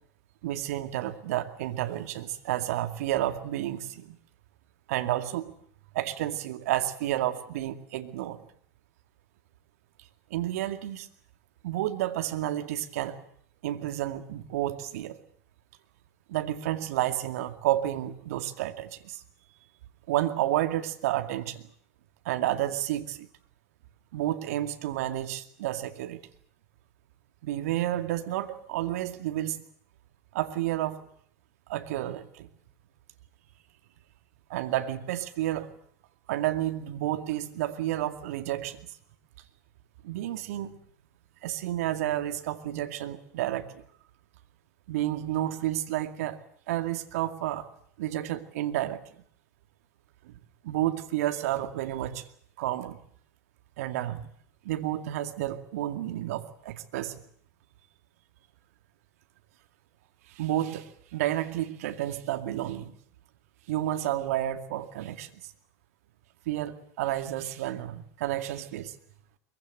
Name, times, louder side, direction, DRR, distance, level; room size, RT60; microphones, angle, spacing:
voice 1, 0.4-4.2 4.9-5.5 5.9-8.4 10.3-11.1 11.6-13.2 13.6-15.2 16.3-19.2 20.1-21.7 22.2-23.3 24.1-26.2 27.4-29.6 30.3-31.1 31.7-32.5 34.5-35.7 36.3-38.8 40.0-40.8 41.4-43.8 44.9-46.4 46.7-47.7 48.0-49.0 50.2-50.4 50.6-52.3 52.6-53.0 53.8-54.2 54.6-57.2 60.3-62.9 63.7-65.5 66.5-68.9, right 13 dB, 65° right, 8 dB, 2.3 m, -31 dB
23.0 x 23.0 x 7.9 m, 0.63 s
hypercardioid pair, 85°, 8 cm